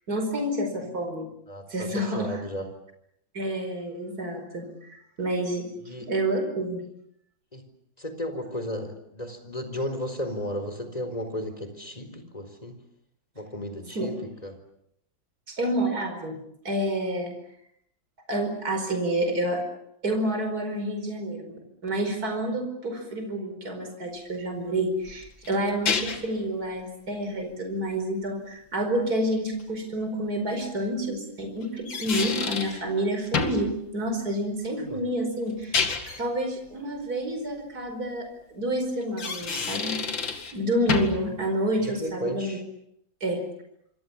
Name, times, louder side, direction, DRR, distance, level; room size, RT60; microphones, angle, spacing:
voice 1, 0.1-1.3 1.7-2.4 3.3-6.8 13.9-14.1 15.5-16.4 16.7-17.3 18.3-19.6 20.0-21.6 21.8-35.8 36.2-40.1 40.5-42.6 43.2-43.4, right 1 dB, 50° right, 5 dB, 5.4 m, -29 dB
voice 2, 1.5-2.7 5.9-6.1 7.5-7.7 8.0-12.8 13.4-14.2 14.4-14.6 34.7-35.0 41.8-42.6, equal, 20° left, 7 dB, 4.3 m, -34 dB
sound 1, 25.1-26.4 29.6-29.7 31.6-32.8 33.3-33.7 35.5-36.2 39.0-40.6 40.9-41.3, left 5 dB, 75° left, 3.0 m, -29 dB
27.0 x 26.0 x 7.2 m, 0.75 s
omnidirectional pair, 2.1 m